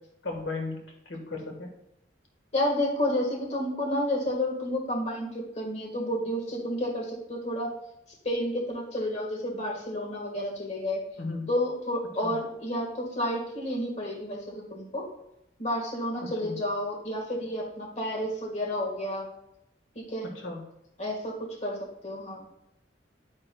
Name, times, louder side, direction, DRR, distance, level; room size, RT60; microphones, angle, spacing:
voice 1, 0.2-1.7 11.2-11.5 12.2-12.4 16.2-16.6 20.2-20.6, left 3 dB, 90° left, 1 dB, 1.5 m, -36 dB
voice 2, 2.5-7.7 8.2-11.0 11.5-15.1 15.6-19.3 19.9-20.3 21.0-22.4, left 1 dB, 40° left, 0 dB, 1.7 m, -30 dB
11.0 x 8.9 x 2.3 m, 0.82 s
head